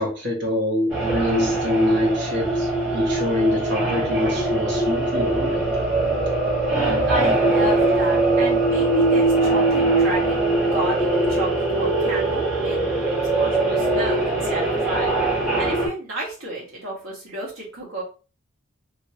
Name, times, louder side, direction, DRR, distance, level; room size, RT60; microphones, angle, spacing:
voice 1, 0.0-5.7, left 1 dB, 50° right, -2 dB, 1.3 m, -24 dB
sound 1, 0.9-15.9, right 2 dB, 5° right, 1.3 m, -21 dB
voice 2, 7.0-15.1 15.6-18.0, right 2 dB, 70° right, -4 dB, 1.6 m, -31 dB
3.1 x 2.8 x 2.7 m, 0.34 s
head